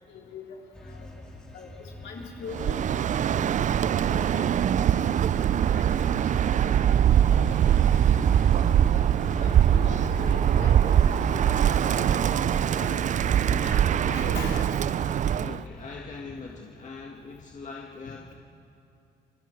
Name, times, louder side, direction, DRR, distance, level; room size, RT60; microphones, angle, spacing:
voice 1, 0.1-0.6 0.8-1.1 1.5-1.7 2.0-3.0 3.4-4.6 5.0-5.1 5.7-5.9 6.4-6.9 7.3-8.9 9.4-13.0 13.4-14.7, left 4 dB, 70° left, -2 dB, 4.4 m, -41 dB
sound 1, 0.7-16.2, left 1 dB, 5° left, 6.6 m, -40 dB
Bird, 2.5-15.6, right 10 dB, 40° right, 0.4 m, -23 dB
voice 2, 15.4-18.3, left 4 dB, 40° left, -1 dB, 1.8 m, -41 dB
27.5 x 22.5 x 4.6 m, 2.6 s
cardioid pair, 110°, 19 cm